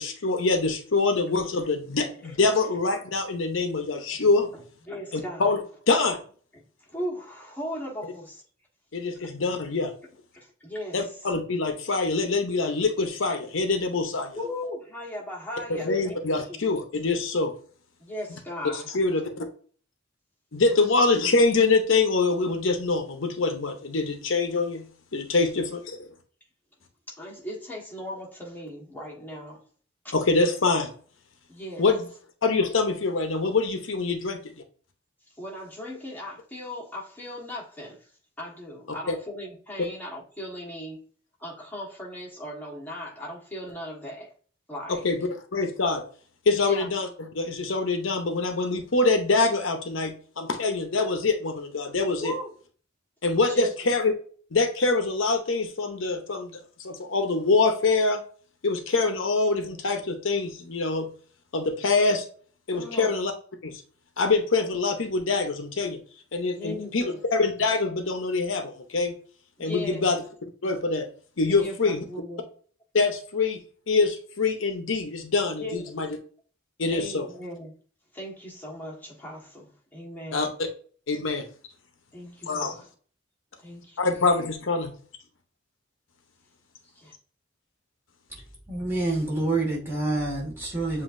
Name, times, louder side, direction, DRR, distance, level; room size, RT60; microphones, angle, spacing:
voice 1, 0.0-4.5 5.1-5.6 5.9-6.2 8.9-9.9 10.9-14.4 15.7-17.5 18.9-19.4 20.5-24.9 25.1-26.1 30.1-30.9 31.8-32.0 32.4-34.4 39.1-39.2 44.9-45.2 45.5-46.0 46.5-52.3 53.2-54.1 54.5-58.2 58.6-61.1 61.5-62.2 62.7-63.3 63.6-63.8 64.2-66.0 66.3-69.2 69.6-70.2 70.6-71.1 71.4-72.0 72.9-73.6 73.9-76.1 76.8-77.3 80.3-80.5 81.1-81.5 82.5-82.7 84.0-84.9, left 3 dB, 80° left, 0.8 m, -25 dB
voice 2, 4.9-5.5 6.5-8.4 9.1-9.3 10.3-11.1 14.3-16.2 16.5-16.6 18.0-18.9 20.6-20.8 25.3-25.4 27.1-29.6 30.0-30.1 31.5-31.8 35.3-38.1 38.4-41.0 41.4-44.3 44.7-45.1 46.6-46.9 52.2-52.5 53.5-53.7 62.7-63.1 66.5-67.2 69.6-70.1 71.5-72.4 75.6-76.0 76.9-77.7 78.1-80.5 82.1-82.9 83.6-84.2 86.9-87.1, left 1 dB, 10° left, 1.4 m, -38 dB
voice 3, 88.7-91.0, right 2 dB, 10° right, 1.8 m, -27 dB
7.3 x 2.7 x 2.5 m
head